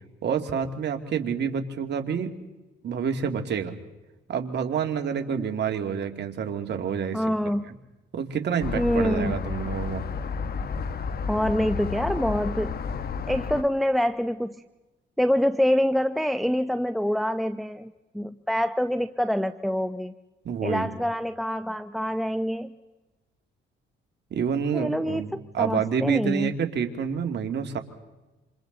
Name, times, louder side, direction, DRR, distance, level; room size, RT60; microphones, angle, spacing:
voice 1, 0.2-2.3 2.8-3.7 4.3-7.2 7.6-7.7 8.1-10.0 20.4-20.9 24.3-27.8, right 7 dB, 60° right, 5 dB, 2.4 m, -28 dB
voice 2, 7.1-7.7 8.7-9.4 11.3-12.8 13.3-14.6 15.2-20.1 20.6-22.7 24.7-25.2 25.6-26.5, equal, ahead, 9 dB, 0.8 m, -26 dB
sound 1, 8.6-13.6, left 5 dB, 50° left, 1.3 m, -31 dB
28.5 x 27.0 x 4.0 m, 1.1 s
cardioid pair, 90°, 20 cm